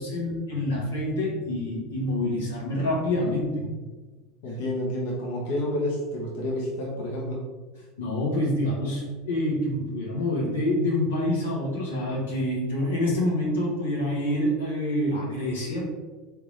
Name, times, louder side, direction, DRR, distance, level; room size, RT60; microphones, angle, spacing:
voice 1, 0.0-3.6 8.0-15.8, left 1 dB, 85° left, -5 dB, 1.3 m, -27 dB
voice 2, 4.4-7.5, left 1 dB, 65° left, -3 dB, 1.0 m, -29 dB
3.7 x 3.5 x 3.1 m, 1.3 s
hypercardioid pair, 85°, 0 cm